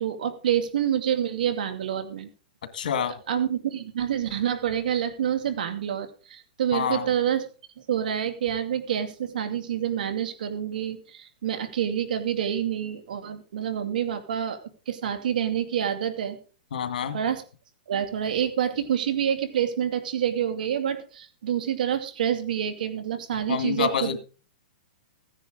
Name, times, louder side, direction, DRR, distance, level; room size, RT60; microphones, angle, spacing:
voice 1, 0.0-2.3 3.3-7.5 7.9-16.4 17.1-17.4 17.9-24.2, right 9 dB, 75° right, 9 dB, 2.6 m, -27 dB
voice 2, 2.7-3.2 6.7-7.1 16.7-17.2 23.5-24.2, left 7 dB, 75° left, 10 dB, 2.0 m, -27 dB
15.5 x 10.0 x 3.9 m, 0.37 s
hypercardioid pair, 140°, 5 cm